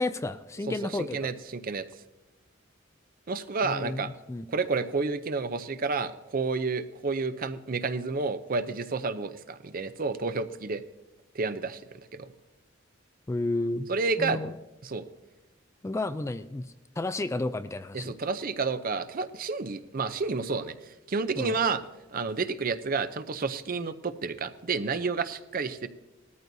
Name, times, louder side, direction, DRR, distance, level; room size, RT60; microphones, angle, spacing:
voice 1, 0.0-1.3 3.6-4.5 13.3-13.9 14.2-14.5 15.8-18.1 21.4-21.6, left 2 dB, 15° left, 11 dB, 0.3 m, -32 dB
voice 2, 1.0-1.9 3.3-4.1 4.5-10.8 11.3-11.8 12.1-12.3 13.9-14.4 14.8-15.1 17.9-20.8 21.1-21.8 22.1-25.9, right 4 dB, 45° right, 12 dB, 0.6 m, -30 dB
19.0 x 13.5 x 2.7 m, 1.0 s
head